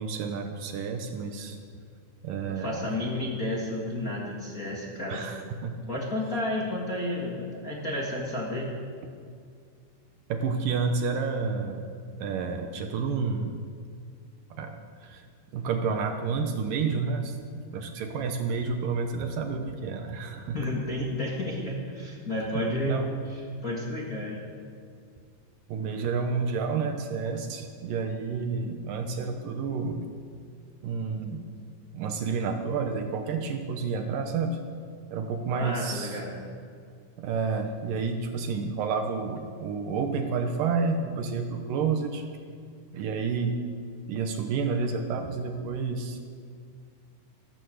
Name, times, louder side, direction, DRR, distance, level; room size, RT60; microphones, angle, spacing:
voice 1, 0.0-1.6 2.2-2.8 5.1-5.8 10.3-11.8 12.2-13.6 14.5-15.2 15.5-17.4 17.7-20.6 22.5-23.1 25.7-30.0 30.8-31.5 31.9-34.6 35.1-36.2 37.2-42.3 42.9-43.6 44.1-46.2, right 5 dB, 70° right, 5 dB, 2.4 m, -30 dB
voice 2, 2.4-5.2 5.9-8.7 20.5-23.0 23.3-24.4 35.6-36.4, left 1 dB, 35° left, -4 dB, 1.5 m, -31 dB
14.5 x 12.0 x 7.9 m, 2.2 s
omnidirectional pair, 4.4 m